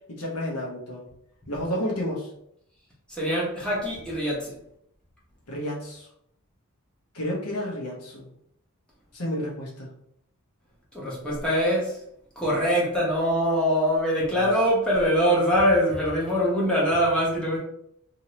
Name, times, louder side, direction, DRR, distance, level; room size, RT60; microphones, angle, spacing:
voice 1, 0.2-1.0 1.5-2.3 5.5-6.1 7.1-8.3 9.1-9.9 14.3-14.5, equal, 80° left, -3 dB, 1.0 m, -31 dB
voice 2, 3.1-4.5 10.9-11.9 12.4-17.6, equal, 5° left, -7 dB, 1.1 m, -23 dB
2.9 x 2.7 x 3.1 m, 0.73 s
head